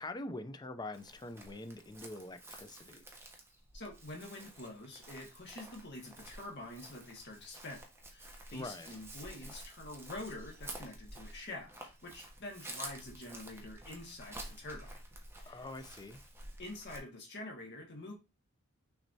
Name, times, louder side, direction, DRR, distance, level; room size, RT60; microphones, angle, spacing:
voice 1, 0.0-3.0 8.5-8.9 15.5-16.2, left 2 dB, 20° left, 0.4 m, -44 dB
Chirp tweet, 0.9-17.0, right 1 dB, 10° right, 0.9 m, -50 dB
voice 2, 3.7-7.8 8.1-15.0 15.4-15.7 16.6-18.1, left 2 dB, 55° left, 1.6 m, -46 dB
6.1 x 3.2 x 2.7 m
head